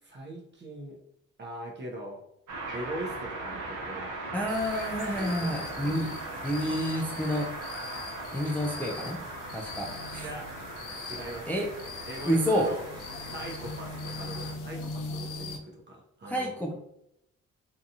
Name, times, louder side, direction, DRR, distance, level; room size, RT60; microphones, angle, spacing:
voice 1, 0.0-1.0 1.4-2.2 2.7-4.1 5.1-6.0 10.2-10.5 11.0-11.6 12.1-12.8 13.2-16.5, right 1 dB, 35° right, -1 dB, 0.6 m, -41 dB
sound 1, 2.5-14.5, right 2 dB, 70° right, 0.7 m, -39 dB
voice 2, 4.3-6.1 6.4-7.5 8.3-9.2 9.5-10.3 11.5-11.7 12.3-12.7 16.3-16.7, equal, 5° left, 0 dB, 0.3 m, -29 dB
sound 2, 4.5-15.6, left 3 dB, 80° left, 0.5 m, -41 dB
2.7 x 2.3 x 2.7 m, 0.78 s
cardioid pair, 70°, 31 cm